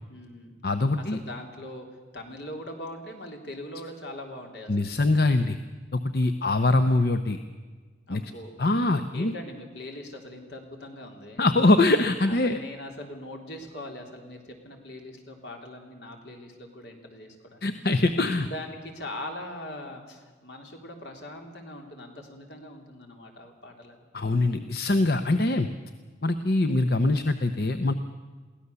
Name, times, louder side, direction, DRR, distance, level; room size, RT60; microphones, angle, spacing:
voice 1, 0.1-0.6 1.0-1.9 2.1-4.8 8.1-8.5 9.1-11.5 12.2-17.6 18.2-24.1, left 1 dB, 80° left, 3 dB, 3.5 m, -41 dB
voice 2, 0.6-1.2 4.7-5.6 5.9-7.4 8.1-8.2 8.6-9.3 11.4-12.6 17.6-18.5 24.1-25.7 26.2-27.9, left 2 dB, 60° left, 9 dB, 0.8 m, -23 dB
22.5 x 16.5 x 6.9 m, 1.4 s
head